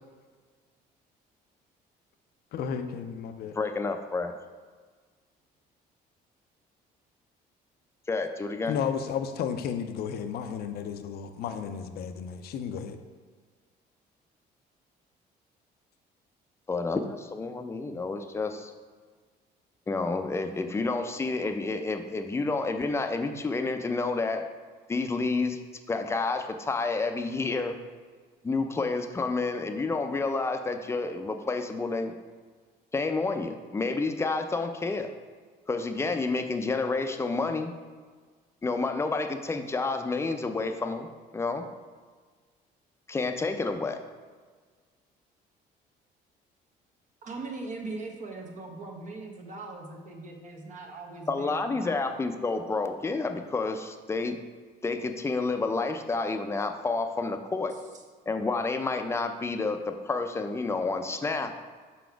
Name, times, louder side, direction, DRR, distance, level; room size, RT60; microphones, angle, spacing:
voice 1, 2.5-3.6 8.7-13.0, left 7 dB, 65° left, 8 dB, 0.5 m, -33 dB
voice 2, 3.5-4.3 8.1-8.8 16.7-18.7 19.9-24.5 24.9-25.6 25.9-27.8 28.4-32.1 32.9-35.1 35.7-37.7 38.6-41.7 43.1-44.0 51.3-54.4 54.8-57.7 58.3-61.5, left 3 dB, 15° left, 6 dB, 0.5 m, -29 dB
voice 3, 47.2-52.2, right 3 dB, 50° right, 1 dB, 0.9 m, -40 dB
5.8 x 4.2 x 4.6 m, 1.5 s
cardioid pair, 110°, 17 cm